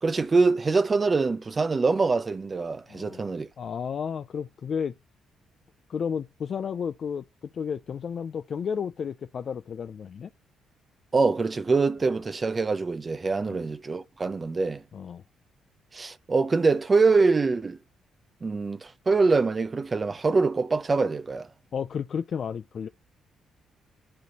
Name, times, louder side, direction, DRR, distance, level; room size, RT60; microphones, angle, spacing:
voice 1, 0.0-3.5 11.1-14.8 15.9-17.8 18.4-21.5, right 4 dB, 30° right, 0.6 m, -24 dB
voice 2, 2.9-3.2 3.6-4.9 5.9-7.2 7.5-10.3 13.5-13.6 14.9-15.2 21.7-22.9, left 7 dB, 55° left, 0.4 m, -32 dB
11.0 x 4.2 x 2.9 m
cardioid pair, 90°, 0 cm